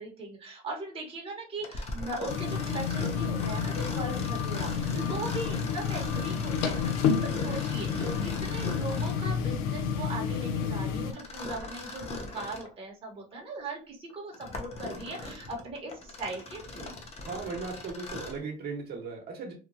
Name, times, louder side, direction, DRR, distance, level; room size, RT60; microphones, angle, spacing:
voice 1, 0.0-6.8 7.2-16.9, right 2 dB, 25° right, -2 dB, 1.0 m, -39 dB
Mechanisms, 1.6-9.3 11.1-12.7 13.3-13.4 14.1-18.5, left 2 dB, 30° left, 0.6 m, -40 dB
sound 1, 2.3-11.1, left 7 dB, 85° left, 0.5 m, -30 dB
voice 2, 4.8-5.2 17.2-19.5, right 4 dB, 50° right, 0 dB, 1.0 m, -37 dB
2.9 x 2.2 x 2.5 m, 0.36 s
cardioid pair, 115°, 21 cm